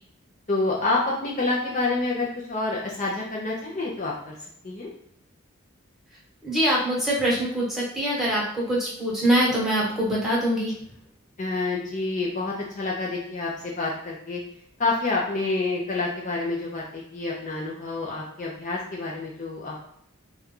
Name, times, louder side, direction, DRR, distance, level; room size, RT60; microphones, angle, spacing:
voice 1, 0.5-4.3 4.6-4.9 11.4-14.4 14.8-19.8, left 3 dB, 40° left, -3 dB, 0.6 m, -28 dB
voice 2, 6.4-10.7, right 1 dB, ahead, -6 dB, 1.2 m, -24 dB
4.2 x 2.3 x 3.7 m, 0.72 s
head